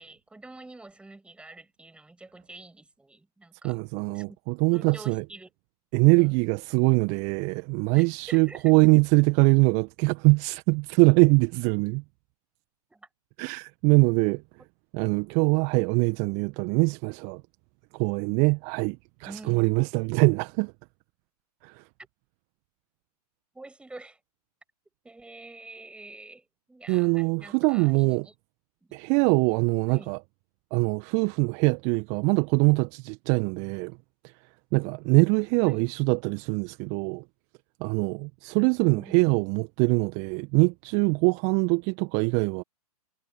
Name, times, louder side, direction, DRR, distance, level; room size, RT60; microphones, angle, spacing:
voice 1, 0.0-3.8 4.1-4.4 4.7-5.5 6.1-6.4 7.9-8.8 12.9-13.1 19.2-19.7 23.5-24.2 25.0-28.3 28.8-28.9 29.9-30.1 35.6-35.9 38.8-39.4, right 2 dB, 5° right, 7.9 m, -47 dB
voice 2, 3.6-5.2 5.9-12.0 13.4-14.4 14.9-17.4 17.9-20.7 21.6-21.8 26.9-28.3 28.9-30.2 30.7-34.0 34.7-37.2 37.8-42.6, right 33 dB, 35° right, 1.6 m, -23 dB
figure-of-eight pair, 110°, 20 cm